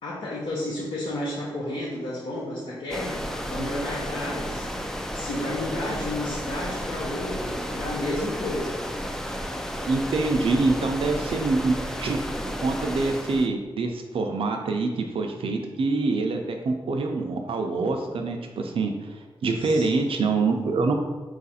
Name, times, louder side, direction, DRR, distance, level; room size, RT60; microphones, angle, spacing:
voice 1, 0.0-8.8 19.6-20.2, left 1 dB, 75° left, -6 dB, 0.8 m, -32 dB
sound 1, 2.9-13.5, equal, 5° left, 0.3 m, -32 dB
voice 2, 9.9-12.2 12.6-16.4 16.7-20.9, right 3 dB, 75° right, 3 dB, 0.5 m, -25 dB
4.6 x 2.5 x 4.1 m, 1.3 s
wide cardioid pair, 105°, 9 cm